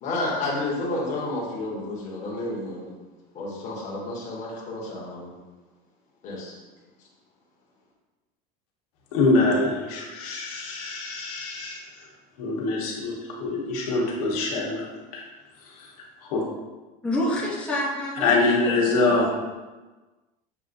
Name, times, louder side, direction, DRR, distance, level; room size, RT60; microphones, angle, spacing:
voice 1, 0.0-2.9 3.3-5.4 6.2-6.5, left 2 dB, 40° left, -4 dB, 1.2 m, -30 dB
voice 2, 9.1-11.8 12.4-15.2 15.8-15.9 16.2-16.4 18.2-19.3, left 3 dB, 90° left, -2 dB, 1.1 m, -24 dB
voice 3, 17.0-19.3, left 1 dB, 5° left, -6 dB, 0.8 m, -28 dB
6.9 x 2.6 x 2.6 m, 1.2 s
cardioid pair, 155°, 19 cm